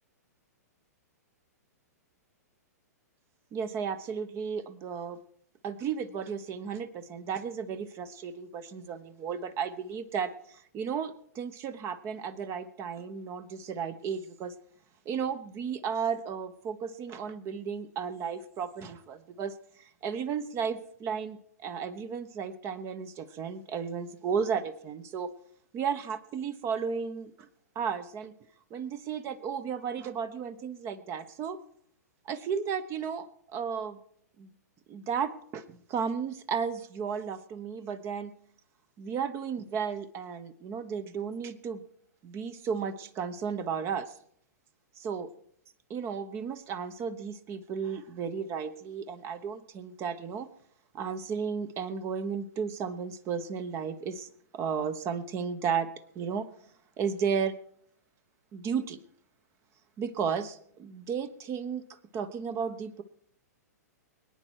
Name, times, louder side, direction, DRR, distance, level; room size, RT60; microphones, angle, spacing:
voice 1, 3.5-5.2 5.6-14.5 15.0-25.3 25.7-27.5 27.7-28.3 28.7-31.6 32.2-34.0 34.4-34.5 34.9-38.3 39.0-41.8 42.2-44.1 45.0-45.3 45.9-50.5 50.9-55.9 56.1-56.5 57.0-57.5 58.5-59.0 60.0-61.8 62.1-63.0, right 6 dB, 30° right, 13 dB, 1.0 m, -34 dB
23.0 x 9.8 x 4.6 m, 0.67 s
figure-of-eight pair, 115°, 9 cm